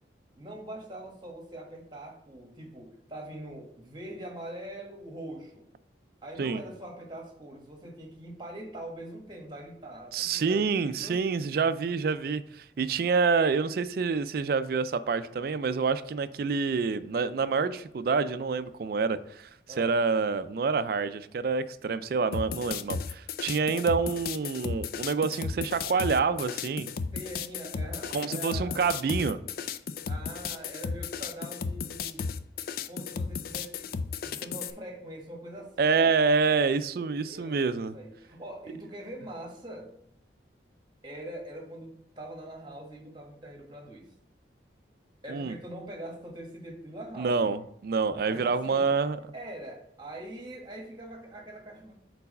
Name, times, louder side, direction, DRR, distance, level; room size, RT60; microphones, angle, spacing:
voice 1, 0.4-5.7 6.2-11.2 19.7-20.0 27.1-28.8 30.1-32.4 32.9-33.9 34.2-36.1 36.9-40.0 41.0-44.1 45.2-47.6 48.2-49.0 49.3-51.9, right 1 dB, 25° right, 1 dB, 1.3 m, -43 dB
voice 2, 10.1-19.5 19.8-26.9 28.1-29.4 35.8-37.9 45.3-45.6 47.2-49.2, right 5 dB, 55° right, 13 dB, 0.3 m, -27 dB
sound 1, 22.3-34.7, left 5 dB, 50° left, 0.3 m, -34 dB
4.6 x 4.0 x 5.4 m, 0.77 s
head